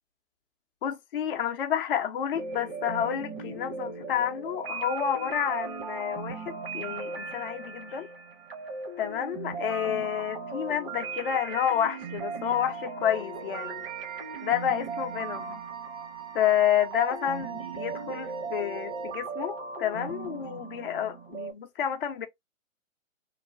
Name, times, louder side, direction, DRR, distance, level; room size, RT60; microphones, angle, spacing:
voice 1, 0.8-8.1 9.0-13.9 14.4-15.6 16.3-22.3, left 9 dB, 45° left, 0.6 m, -29 dB
sound 1, 2.3-21.5, right 4 dB, 45° right, 1.0 m, -38 dB
Wind instrument woodwind instrument, 13.1-19.2, right 13 dB, 20° right, 0.5 m, -44 dB
3.0 x 2.1 x 2.4 m
figure-of-eight pair, 135°, 39 cm